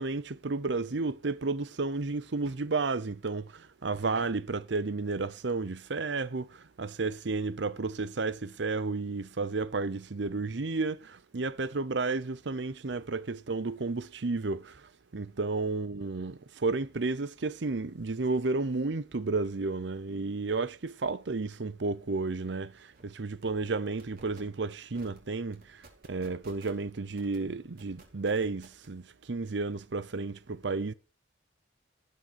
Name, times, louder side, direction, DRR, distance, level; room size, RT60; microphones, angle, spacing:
voice 1, 0.0-25.8 26.1-30.9, right 3 dB, 70° right, 0.7 m, -32 dB
sound 1, 22.4-22.5 22.8-23.0 23.4-23.7 24.0-24.4 24.9-25.2 25.5-26.8 27.2-27.4 27.8-28.9, right 2 dB, 55° right, 4.4 m, -54 dB
18.5 x 6.6 x 4.6 m
head